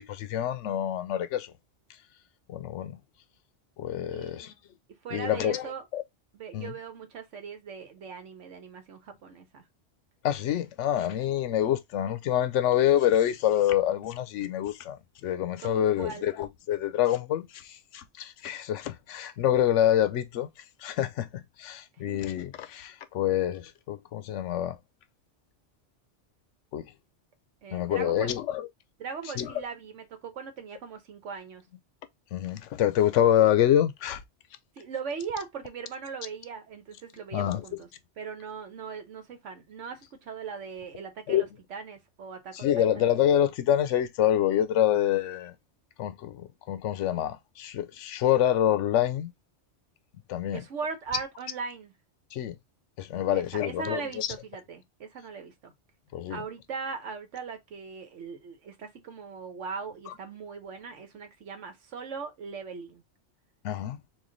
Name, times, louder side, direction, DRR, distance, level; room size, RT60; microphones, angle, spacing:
voice 1, 0.0-1.5 2.5-3.0 3.8-4.5 5.1-6.0 6.5-6.7 10.2-15.0 15.2-20.5 20.8-24.8 26.7-26.9 27.7-28.7 29.4-29.5 32.3-34.2 37.3-37.6 41.3-41.5 42.5-45.5 46.0-49.3 50.3-50.6 52.3-52.6 53.0-54.3 56.1-56.4 60.1-60.2 63.6-64.0, left 11 dB, 80° left, 0.9 m, -26 dB
voice 2, 4.1-4.4 5.0-5.9 6.3-9.6 15.6-16.3 22.1-22.2 27.6-28.3 29.0-31.6 34.8-37.9 38.2-43.1 50.5-51.9 53.3-55.7 56.3-63.0, right 5 dB, 85° right, 1.2 m, -39 dB
3.1 x 2.5 x 3.8 m
omnidirectional pair, 1.2 m